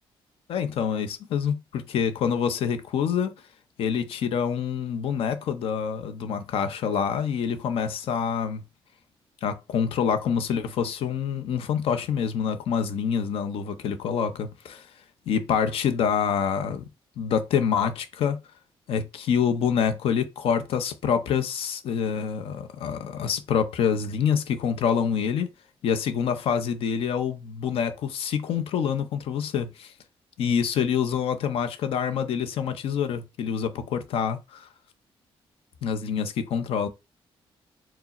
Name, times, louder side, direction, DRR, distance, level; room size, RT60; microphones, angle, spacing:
voice 1, 0.5-3.3 3.8-8.6 9.4-14.9 15.3-16.9 17.2-18.4 18.9-25.5 25.8-29.9 30.4-34.7 35.8-36.9, left 7 dB, 75° left, 0.6 m, -26 dB
4.6 x 2.0 x 4.0 m
cardioid pair, 155°, 10 cm